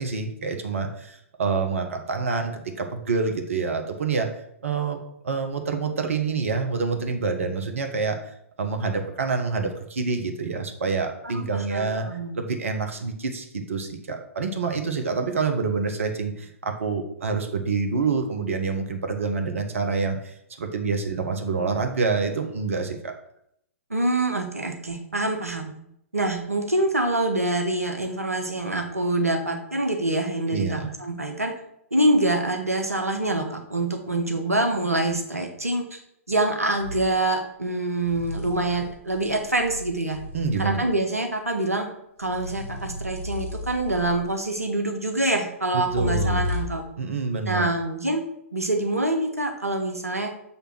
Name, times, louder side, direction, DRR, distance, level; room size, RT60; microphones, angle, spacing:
voice 1, 0.0-4.3 4.6-5.0 5.2-8.3 8.6-12.1 12.3-23.1 30.5-30.9 40.3-40.8 45.7-46.5 47.0-47.7, right 4 dB, 65° right, 5 dB, 1.0 m, -27 dB
voice 2, 11.2-12.4 23.9-25.7 26.1-31.5 31.9-36.0 36.3-40.2 40.6-41.9 42.2-46.8 47.5-48.2 48.5-50.3, right 2 dB, 90° right, 4 dB, 0.9 m, -25 dB
sound 1, 36.8-37.1 38.0-41.0 42.2-44.5 45.8-46.9, left 3 dB, 60° left, 1.9 m, -34 dB
7.0 x 3.4 x 6.0 m, 0.74 s
figure-of-eight pair, 115°, 8 cm